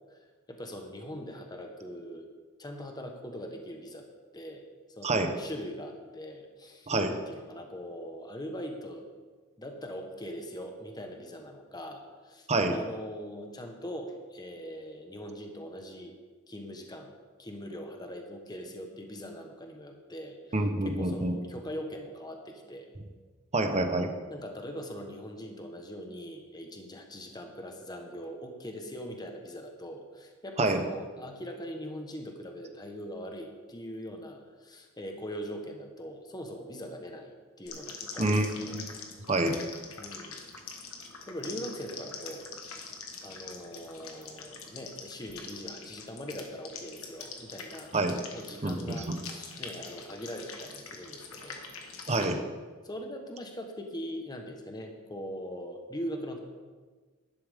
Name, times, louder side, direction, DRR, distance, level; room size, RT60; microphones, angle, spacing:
voice 1, 0.5-2.3 2.6-4.1 4.3-4.6 5.0-9.0 9.6-16.1 16.5-17.1 17.4-20.5 20.8-22.9 24.3-38.8 40.0-40.4 40.6-40.9 41.3-42.5 43.2-47.9 48.3-51.6 52.8-56.4, equal, 20° left, 3 dB, 1.2 m, -41 dB
voice 2, 5.0-5.3 6.9-7.1 12.5-12.7 20.5-21.4 23.5-24.1 30.6-30.8 38.2-38.9 39.3-39.6 47.9-48.2 48.6-49.2 52.1-52.4, right 2 dB, 30° right, 6 dB, 0.9 m, -27 dB
sound 1, 37.6-52.3, left 5 dB, 70° left, 1.4 m, -44 dB
11.5 x 11.0 x 3.6 m, 1.4 s
head